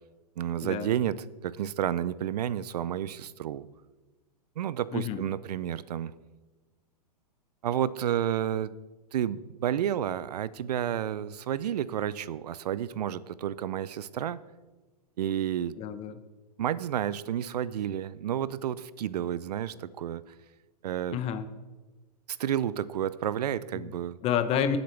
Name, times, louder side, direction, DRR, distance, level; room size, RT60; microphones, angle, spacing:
voice 1, 0.4-3.7 4.6-6.1 7.6-8.7 9.1-14.4 15.2-15.8 16.6-20.2 20.8-21.2 22.3-24.2, right 10 dB, 70° right, 18 dB, 0.5 m, -31 dB
voice 2, 4.9-5.2 15.8-16.1 21.1-21.5 23.7-23.9 24.2-24.8, left 9 dB, 30° left, 11 dB, 0.9 m, -29 dB
19.5 x 7.9 x 3.4 m, 1.2 s
hypercardioid pair, 120°, 21 cm